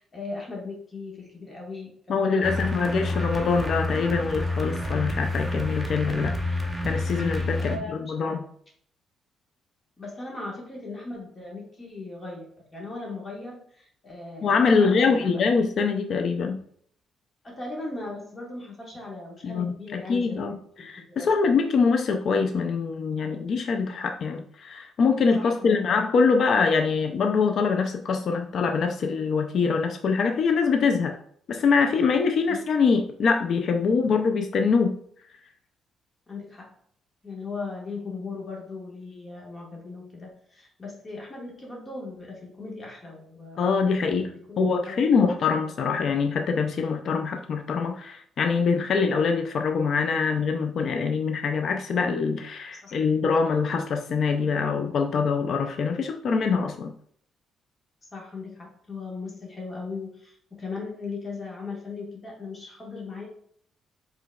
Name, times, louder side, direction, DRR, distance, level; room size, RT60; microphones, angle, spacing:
voice 1, 0.0-3.2 7.6-8.3 10.0-15.4 17.4-20.4 21.0-21.3 25.4-26.0 32.5-32.6 36.3-36.7 37.2-43.7 44.3-45.7 52.7-53.0 58.1-63.3, left 3 dB, 30° left, -2 dB, 1.4 m, -38 dB
voice 2, 2.1-7.8 8.1-8.5 14.4-16.6 19.4-31.2 31.5-35.0 43.6-56.9, left 5 dB, 60° left, 4 dB, 0.4 m, -24 dB
sound 1, 2.4-7.8, left 2 dB, 5° right, 0.8 m, -29 dB
5.0 x 3.8 x 2.3 m, 0.63 s
cardioid pair, 90°, 0 cm